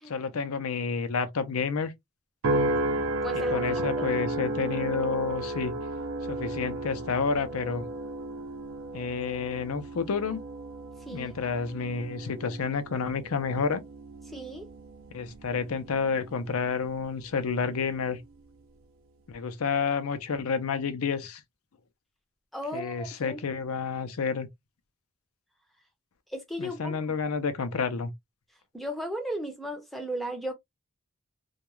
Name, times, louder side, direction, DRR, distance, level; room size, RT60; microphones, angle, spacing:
voice 1, 0.1-1.9 3.5-5.7 6.3-7.9 8.9-10.4 11.1-13.8 15.1-18.2 19.3-21.4 22.7-24.5 26.6-28.1, left 5 dB, 80° left, 0.5 m, -30 dB
sound 1, 2.4-16.9 17.4-17.9, right 1 dB, 70° right, 0.6 m, -34 dB
voice 2, 3.2-3.6 4.0-4.1 11.0-11.3 14.3-14.7 22.5-23.4 26.3-27.2 28.7-30.5, equal, ahead, 0.5 m, -35 dB
2.3 x 2.3 x 2.9 m
head